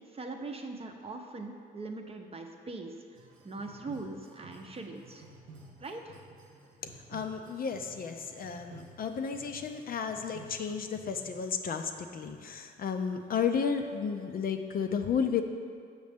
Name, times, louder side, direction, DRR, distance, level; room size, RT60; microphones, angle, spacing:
voice 1, 0.1-3.2 3.4-5.2 5.8-6.2, right 3 dB, 30° right, 3 dB, 0.6 m, -41 dB
sound 1, 3.1-11.6, right 2 dB, 90° right, 1.0 m, -53 dB
voice 2, 7.1-15.4, left 6 dB, 50° left, 6 dB, 0.5 m, -33 dB
6.6 x 6.2 x 3.4 m, 2.1 s
cardioid pair, 90°, 20 cm